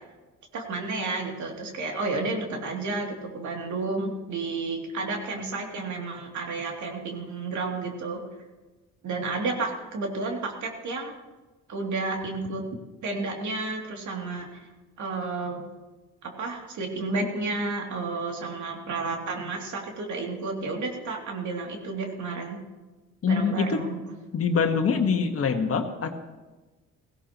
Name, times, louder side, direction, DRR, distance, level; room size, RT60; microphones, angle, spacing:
voice 1, 0.5-8.2 9.0-11.1 11.7-12.6 13.0-14.7 15.0-15.6 16.2-22.6 23.3-24.0, right 3 dB, 70° right, 1 dB, 2.9 m, -31 dB
voice 2, 23.2-23.8 24.3-26.2, left 5 dB, 50° left, 5 dB, 1.5 m, -24 dB
17.0 x 17.0 x 3.0 m, 1.2 s
cardioid pair, 90°, 30 cm